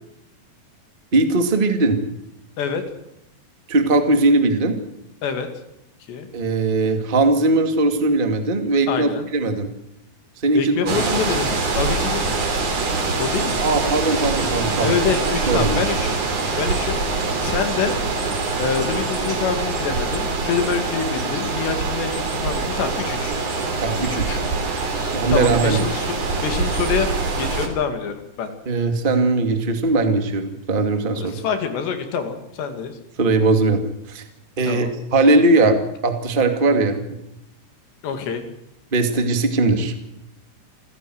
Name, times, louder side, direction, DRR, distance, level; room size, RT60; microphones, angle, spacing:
voice 1, 1.1-2.0 3.7-4.7 6.3-9.7 10.4-11.0 13.6-15.0 15.5-15.8 23.8-24.4 25.1-25.8 28.6-31.3 33.2-34.2 34.6-37.2 38.9-39.9, right 2 dB, 20° right, 6 dB, 1.3 m, -19 dB
voice 2, 8.9-9.3 10.5-12.4 13.2-13.6 14.8-16.2 16.6-18.0 18.6-23.4 24.1-24.5 24.8-28.5 31.1-33.0 34.6-34.9 38.0-38.5, left 6 dB, 75° left, 7 dB, 4.5 m, -26 dB
sound 1, 10.9-27.7, right 3 dB, 40° right, 3.8 m, -24 dB
27.5 x 15.5 x 7.9 m, 0.84 s
omnidirectional pair, 5.1 m